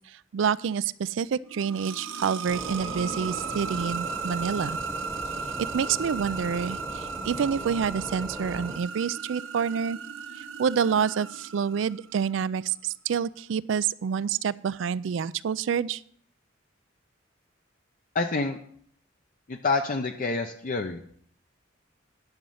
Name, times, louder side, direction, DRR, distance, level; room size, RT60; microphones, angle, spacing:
voice 1, 0.1-4.8 5.7-10.0 10.4-16.0, right 7 dB, 70° right, 19 dB, 0.4 m, -28 dB
sound 1, 1.4-12.2, right 5 dB, 85° right, 0.8 m, -36 dB
sound 2, 2.4-8.8, equal, ahead, 1.0 m, -40 dB
voice 2, 18.1-18.6 19.5-21.0, left 3 dB, 45° left, 5 dB, 0.6 m, -27 dB
10.5 x 6.4 x 5.6 m, 0.64 s
head